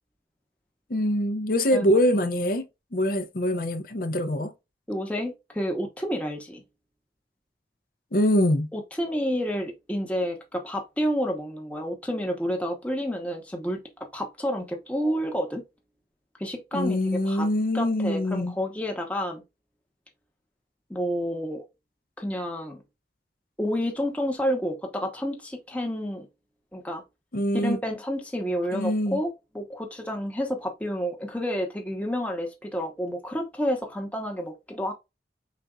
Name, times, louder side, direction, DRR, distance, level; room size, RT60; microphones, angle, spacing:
voice 1, 0.9-2.6 2.9-4.5 8.1-8.7 16.7-18.6 27.3-27.8 28.7-29.2, left 1 dB, 55° left, 0.7 m, -24 dB
voice 2, 4.9-6.6 8.7-13.8 14.1-15.6 16.4-17.5 17.7-19.4 20.9-21.6 22.2-22.8 23.6-26.3 26.7-27.0 27.5-34.9, equal, 10° left, 0.9 m, -30 dB
5.1 x 4.0 x 2.3 m
head